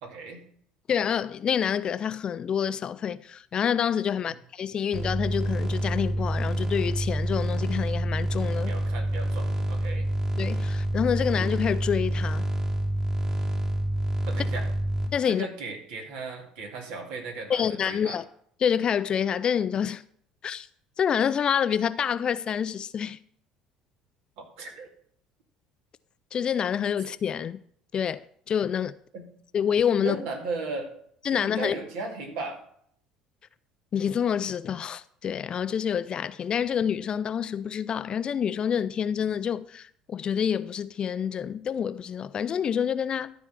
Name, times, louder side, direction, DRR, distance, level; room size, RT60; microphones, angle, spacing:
voice 1, 0.0-0.4 4.2-4.4 8.7-10.1 14.3-14.7 15.2-18.2 24.4-24.9 29.1-29.3 30.0-30.9 31.3-32.6, right 3 dB, 65° right, 2.1 m, -36 dB
voice 2, 0.9-8.7 10.4-12.5 15.1-15.5 17.5-18.2 18.6-20.0 20.4-20.7 21.0-23.2 26.3-27.6 27.9-29.0 29.5-30.2 31.3-31.7 33.9-43.3, left 8 dB, 40° left, 0.4 m, -27 dB
sound 1, 4.9-15.1, right 1 dB, 25° right, 1.9 m, -27 dB
13.0 x 4.5 x 5.8 m
hypercardioid pair, 60°, 2 cm